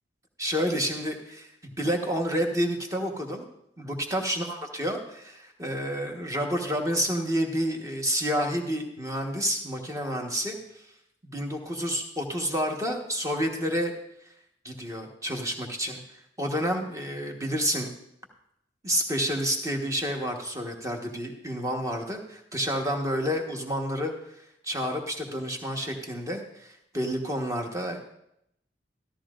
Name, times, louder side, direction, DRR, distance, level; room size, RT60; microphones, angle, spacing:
voice 1, 0.4-3.5 3.8-10.8 11.2-13.9 14.6-17.9 18.8-28.0, equal, 15° right, 2 dB, 1.2 m, -29 dB
14.0 x 13.0 x 2.5 m, 0.77 s
head